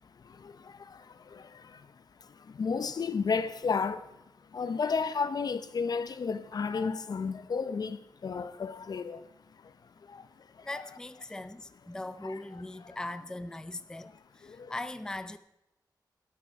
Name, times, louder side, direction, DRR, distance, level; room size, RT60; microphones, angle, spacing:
voice 1, 0.2-4.1 4.5-9.3 9.5-9.8 10.0-10.7 12.2-12.3 12.8-13.0 14.4-14.7, left 5 dB, 60° left, 0.8 m, -33 dB
voice 2, 10.6-15.4, left 2 dB, 10° left, 0.5 m, -40 dB
13.0 x 11.5 x 4.7 m
wide cardioid pair, 120°, 8 cm